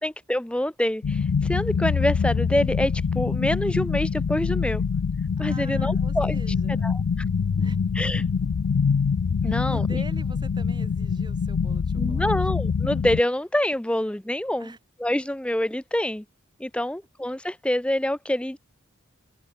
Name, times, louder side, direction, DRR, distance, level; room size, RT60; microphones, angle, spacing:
voice 1, 0.0-1.2 1.5-4.8 5.4-6.4 6.8-7.0 7.9-8.2 9.4-9.8 12.0-14.7 15.0-16.2 16.6-18.6, left 1 dB, 5° left, 0.5 m, -26 dB
sound 1, 1.0-13.2, left 5 dB, 80° left, 0.4 m, -25 dB
voice 2, 5.4-6.9 7.6-7.8 8.1-8.5 9.5-12.4 14.6-14.8, right 1 dB, 20° right, 7.0 m, -44 dB
open air
head